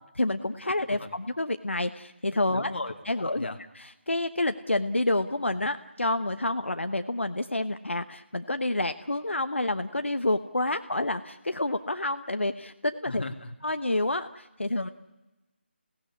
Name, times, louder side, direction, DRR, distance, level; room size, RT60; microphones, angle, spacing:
voice 1, 0.1-2.7 3.0-13.2 13.6-14.9, left 2 dB, 80° left, 9 dB, 1.1 m, -29 dB
voice 2, 2.5-3.6 13.1-13.5, left 2 dB, 60° left, 3 dB, 2.0 m, -36 dB
28.0 x 17.5 x 9.8 m, 1.1 s
figure-of-eight pair, 155°, 6 cm